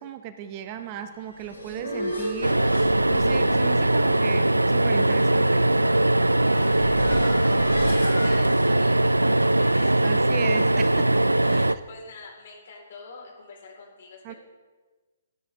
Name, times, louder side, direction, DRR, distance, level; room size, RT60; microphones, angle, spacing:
voice 1, 0.0-2.7 3.1-5.7 10.0-11.2 11.5-11.8 14.2-14.3, right 9 dB, 30° right, 9 dB, 0.8 m, -36 dB
sound 1, 1.1-8.7, left 1 dB, 90° left, 4.7 m, -35 dB
sound 2, 2.0-8.4, right 2 dB, 70° right, 3.9 m, -43 dB
sound 3, 2.4-11.7, right 1 dB, 85° right, 0.4 m, -21 dB
voice 2, 6.5-10.1 11.4-14.4, left 3 dB, 50° left, -1 dB, 4.2 m, -44 dB
17.0 x 9.7 x 3.6 m, 1.3 s
figure-of-eight pair, 130°, 0 cm